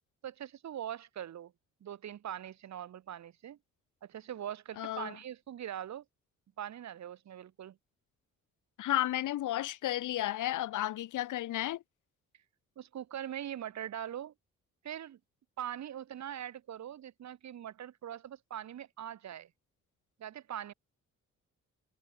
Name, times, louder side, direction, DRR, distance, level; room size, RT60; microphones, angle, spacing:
voice 1, 0.2-1.5 1.8-3.6 4.0-6.0 6.6-7.8 12.8-14.3 14.8-15.2 15.6-19.5 20.2-20.7, right 10 dB, 65° right, 3.2 m, -42 dB
voice 2, 4.8-5.1 8.8-11.8, left 14 dB, 80° left, 3.5 m, -33 dB
cardioid pair, 90°, 30 cm